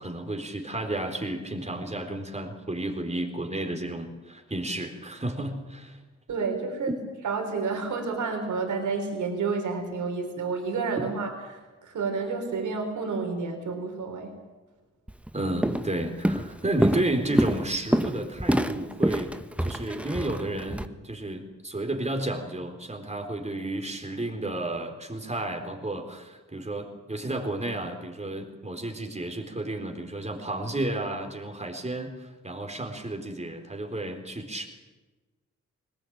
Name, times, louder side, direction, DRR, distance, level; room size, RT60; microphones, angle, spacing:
voice 1, 0.0-6.0 11.0-11.1 15.3-19.3 19.6-34.7, right 1 dB, 20° right, 4 dB, 4.0 m, -32 dB
voice 2, 6.3-7.0 7.2-14.3, right 4 dB, 85° right, 4 dB, 4.1 m, -30 dB
Walk footsteps, 15.1-15.3 15.6-16.0 16.2-20.9, equal, 5° right, 1.1 m, -26 dB
20.5 x 18.0 x 8.8 m, 1.2 s
cardioid pair, 60°, 29 cm